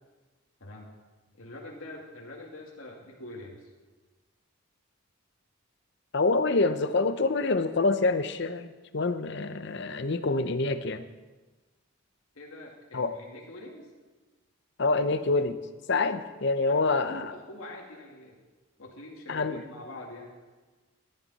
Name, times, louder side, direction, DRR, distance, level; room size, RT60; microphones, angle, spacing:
voice 1, 1.3-3.7 12.3-13.9 16.7-18.4 18.8-20.3, left 1 dB, 80° left, -1 dB, 2.2 m, -44 dB
voice 2, 6.1-11.0 12.9-13.1 14.8-15.6 15.9-17.3 19.3-19.6, left 3 dB, 55° left, 10 dB, 0.7 m, -26 dB
15.0 x 12.0 x 4.2 m, 1.3 s
head